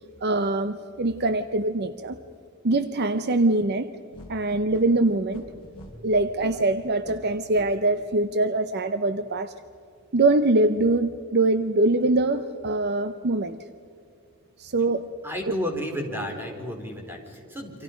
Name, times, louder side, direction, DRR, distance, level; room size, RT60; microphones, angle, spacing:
voice 1, 0.2-2.2 2.6-4.0 4.3-5.4 6.0-9.5 10.1-13.6 14.6-15.1, right 2 dB, 50° right, 11 dB, 0.8 m, -23 dB
sound 1, 4.1-7.7, equal, 25° left, 5.9 m, -45 dB
voice 2, 15.2-17.8, equal, 10° right, 2 dB, 3.9 m, -32 dB
28.5 x 26.5 x 5.2 m, 2.5 s
head